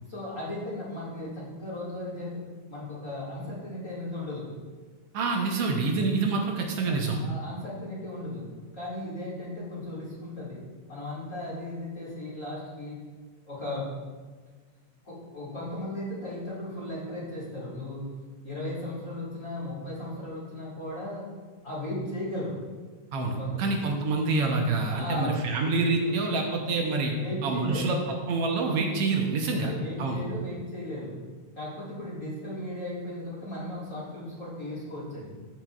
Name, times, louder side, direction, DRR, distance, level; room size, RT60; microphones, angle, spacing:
voice 1, 0.1-2.4 2.7-4.4 6.8-8.5 8.7-10.6 10.9-13.0 13.4-13.9 15.0-18.0 18.4-21.3 21.6-22.6 23.4-23.8 24.9-25.6 26.0-26.2 27.1-27.9 29.5-31.2 31.6-35.3, left 1 dB, 30° left, -8 dB, 2.0 m, -36 dB
voice 2, 5.1-7.2 23.1-27.1 27.4-29.7 30.0-30.2, right 3 dB, 70° right, 2 dB, 1.4 m, -27 dB
13.5 x 5.8 x 2.4 m, 1.4 s
omnidirectional pair, 3.4 m